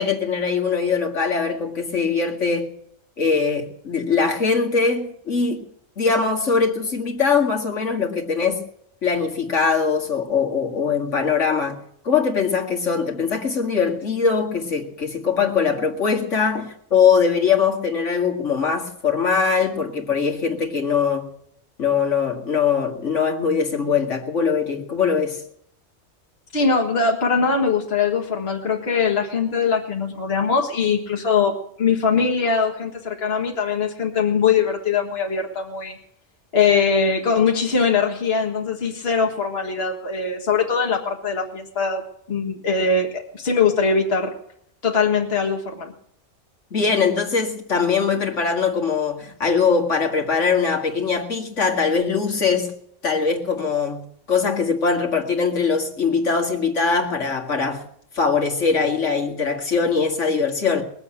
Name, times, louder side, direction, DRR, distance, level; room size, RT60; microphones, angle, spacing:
voice 1, 0.0-2.7 3.2-5.6 6.0-8.6 9.0-11.8 12.0-21.3 21.8-25.4 46.7-52.7 53.0-57.8 58.1-60.8, left 5 dB, 80° left, 1 dB, 2.4 m, -21 dB
voice 2, 26.5-36.0 36.5-42.0 42.3-44.3 44.8-45.9, left 5 dB, 55° left, 1 dB, 1.9 m, -21 dB
20.5 x 7.7 x 8.8 m, 0.70 s
omnidirectional pair, 1.2 m